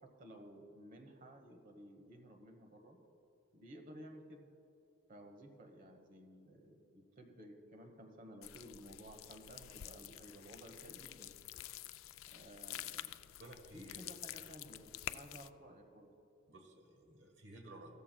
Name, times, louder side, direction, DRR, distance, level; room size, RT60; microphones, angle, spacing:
voice 1, 0.0-3.0 3.5-4.5 5.1-11.4 12.3-13.2 13.7-16.1, equal, 40° right, 3 dB, 1.0 m, -55 dB
sound 1, 8.4-15.5, left 13 dB, 80° left, 0.3 m, -49 dB
voice 2, 13.4-14.1 16.5-17.9, right 1 dB, 60° right, 1 dB, 1.3 m, -55 dB
15.5 x 14.0 x 2.2 m, 2.8 s
head